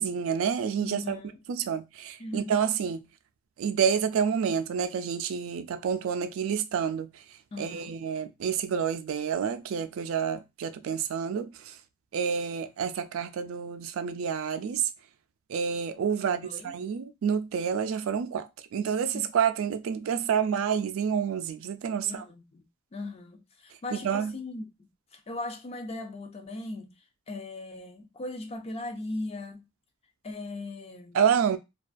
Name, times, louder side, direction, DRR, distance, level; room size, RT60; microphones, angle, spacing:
voice 1, 0.0-1.2 1.5-3.0 3.6-7.2 7.6-11.8 12.1-14.9 15.5-22.2 23.9-24.3 31.1-31.6, right 7 dB, 85° right, 0.3 m, -28 dB
voice 2, 0.8-1.4 2.2-2.6 7.5-8.0 16.2-16.7 19.1-19.3 22.0-22.6 22.9-24.6 25.1-26.9 27.3-29.7 30.2-31.2, left 2 dB, 30° left, 0.4 m, -38 dB
2.3 x 2.3 x 2.4 m
head